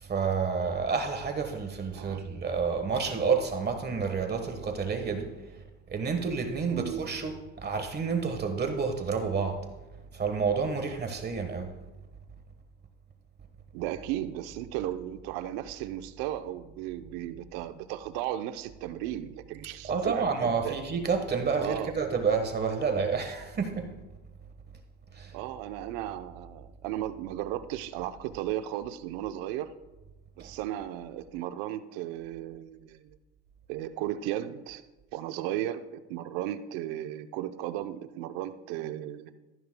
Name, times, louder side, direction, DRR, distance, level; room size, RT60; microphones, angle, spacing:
voice 1, 0.0-5.6 5.9-9.6 10.1-11.7 19.9-23.9 25.1-25.3 30.4-30.5, right 5 dB, 25° right, 1.3 m, -29 dB
voice 2, 6.7-7.0 13.7-20.8 21.6-22.0 25.3-29.7 30.4-33.2 33.7-34.8 35.1-39.3, right 12 dB, 75° right, 0.8 m, -35 dB
14.5 x 12.0 x 2.2 m
supercardioid pair, 100°, 36 cm